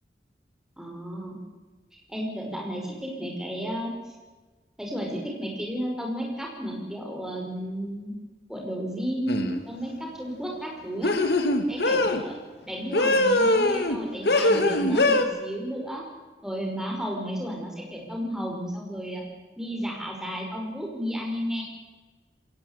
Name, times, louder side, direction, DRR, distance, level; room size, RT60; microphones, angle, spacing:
voice 1, 0.8-1.4 1.9-4.1 4.8-8.1 8.5-11.1 11.7-12.3 12.7-16.0 16.4-19.2 19.6-21.6, equal, 5° right, 0 dB, 5.0 m, -33 dB
sound 1, 9.3-9.6 11.0-12.2 12.9-14.0 14.3-15.2, left 2 dB, 70° left, 2.1 m, -22 dB
21.5 x 18.0 x 8.1 m, 1.3 s
head